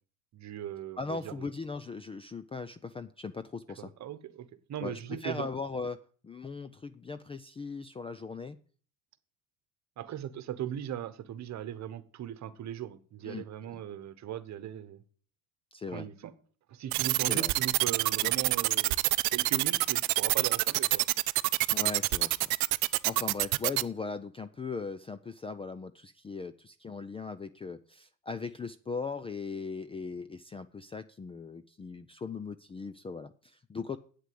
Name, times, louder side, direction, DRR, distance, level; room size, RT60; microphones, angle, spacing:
voice 1, 0.3-1.5 3.8-5.5 10.0-15.0 15.9-16.3 16.7-18.9 19.3-21.0, right 10 dB, 40° right, 14 dB, 1.2 m, -39 dB
voice 2, 1.0-3.9 4.8-8.6 13.2-13.8 15.7-16.1 17.3-17.5 18.2-18.3 21.7-22.6 22.8-34.0, left 4 dB, 15° left, 13 dB, 0.4 m, -39 dB
sound 1, 16.9-23.8, right 23 dB, 85° right, 0.6 m, -26 dB
8.4 x 8.1 x 7.7 m, 0.43 s
supercardioid pair, 105°, 41 cm